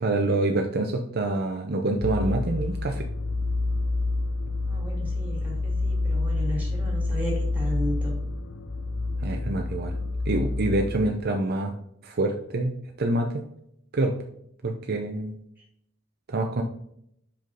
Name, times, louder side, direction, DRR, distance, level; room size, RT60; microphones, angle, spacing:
voice 1, 0.0-3.1 9.2-10.0 10.3-11.7 12.0-13.4 13.9-14.1 14.6-15.3 16.3-16.6, right 2 dB, 50° right, 3 dB, 0.7 m, -26 dB
sound 1, 2.0-11.1, left 2 dB, 65° left, 0.7 m, -28 dB
voice 2, 4.7-8.1, equal, 10° right, -3 dB, 2.9 m, -34 dB
5.7 x 5.2 x 3.9 m, 0.72 s
head